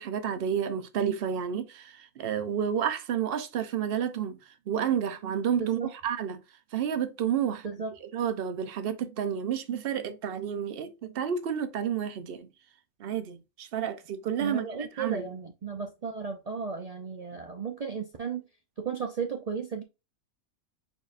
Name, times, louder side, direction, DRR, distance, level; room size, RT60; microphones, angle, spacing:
voice 1, 0.0-4.4 4.7-6.4 6.7-7.7 8.0-12.5 13.0-15.3, right 8 dB, 55° right, 0.7 m, -30 dB
voice 2, 14.4-18.5 18.8-19.8, right 6 dB, 80° right, 0.3 m, -34 dB
4.9 x 4.3 x 2.5 m
omnidirectional pair, 1.5 m